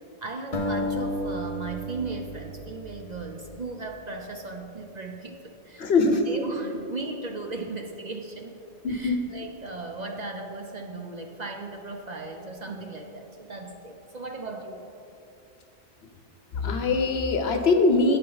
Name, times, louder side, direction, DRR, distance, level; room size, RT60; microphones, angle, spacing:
voice 1, 0.2-8.6 8.9-14.8, right 3 dB, 50° right, 3 dB, 0.6 m, -37 dB
sound 1, 0.5-3.7, left 1 dB, 35° left, 0.9 m, -32 dB
voice 2, 5.8-6.2 8.8-9.2 16.5-18.2, left 3 dB, 65° left, 6 dB, 1.0 m, -22 dB
9.6 x 9.1 x 3.9 m, 2.8 s
omnidirectional pair, 1.2 m